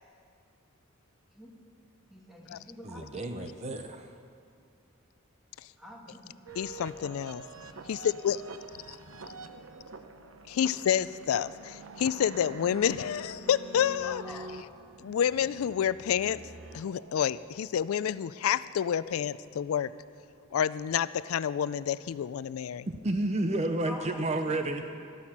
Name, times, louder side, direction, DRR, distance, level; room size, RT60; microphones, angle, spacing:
voice 1, 2.1-3.3 5.8-6.4 14.0-14.5 23.9-24.9, left 1 dB, ahead, -3 dB, 2.0 m, -46 dB
voice 2, 2.8-4.1 22.9-24.8, right 2 dB, 30° right, 6 dB, 0.6 m, -31 dB
sound 1, 6.5-17.4, right 3 dB, 75° right, 0.8 m, -46 dB
voice 3, 6.6-7.4 7.9-8.4 10.5-14.2 15.0-16.4 16.7-19.9 20.5-22.9, left 9 dB, 85° left, 17 dB, 0.3 m, -29 dB
13.5 x 13.0 x 6.0 m, 2.4 s
head